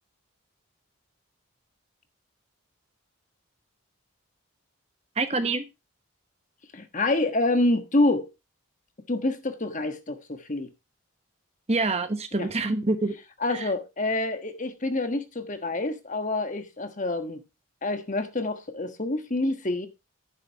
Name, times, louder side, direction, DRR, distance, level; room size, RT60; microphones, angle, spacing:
voice 1, 5.2-5.7 11.7-13.2 13.5-13.7, right 3 dB, 30° right, 1.1 m, -26 dB
voice 2, 6.7-8.3 9.1-10.7 12.3-12.5 13.4-17.4 17.8-19.9, left 2 dB, 35° left, 1.3 m, -27 dB
11.0 x 9.9 x 2.9 m
head